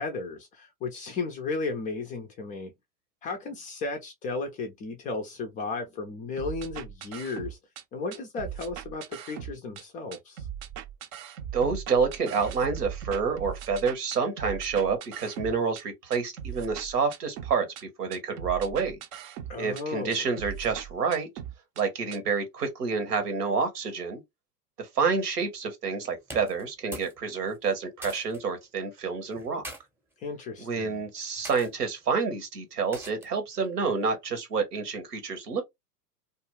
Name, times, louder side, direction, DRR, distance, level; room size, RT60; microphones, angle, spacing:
voice 1, 0.0-2.7 3.2-7.6 7.9-10.5 19.5-20.3 30.2-31.1, left 3 dB, 20° left, 0.3 m, -34 dB
sound 1, 6.4-7.8 8.1-9.8 10.1-15.8 16.1-17.8 18.1-19.8 20.1-21.8 22.1-22.2, right 9 dB, 50° right, 0.6 m, -39 dB
voice 2, 11.5-19.0 19.6-21.3 21.8-24.2 24.8-29.6 30.6-35.6, right 5 dB, 85° right, 1.1 m, -28 dB
sound 2, 26.2-27.2 27.5-28.4 29.3-29.8 30.6-30.8 31.4-31.7 32.9-33.4, right 1 dB, 5° right, 0.7 m, -43 dB
2.4 x 2.2 x 3.1 m
hypercardioid pair, 95°, 46 cm